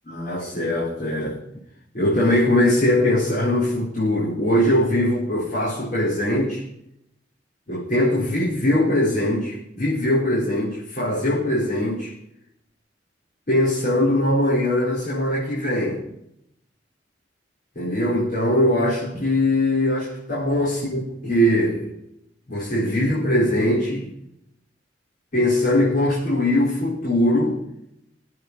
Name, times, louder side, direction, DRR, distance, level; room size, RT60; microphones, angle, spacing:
voice 1, 0.1-1.4 1.9-6.7 7.7-12.1 13.5-16.0 17.8-21.9 22.5-24.1 25.3-27.6, left 1 dB, 50° left, -8 dB, 4.5 m, -21 dB
21.5 x 8.5 x 4.2 m, 0.77 s
head